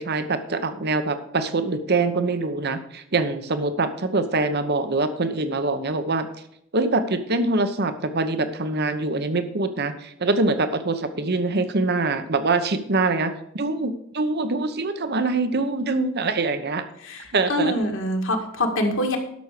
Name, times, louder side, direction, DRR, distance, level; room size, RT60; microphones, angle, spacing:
voice 1, 0.0-6.3 6.7-16.9 17.3-17.8, right 3 dB, 50° right, 10 dB, 1.0 m, -24 dB
voice 2, 17.0-19.2, left 1 dB, 60° left, 3 dB, 2.0 m, -25 dB
12.0 x 6.3 x 6.7 m, 0.74 s
head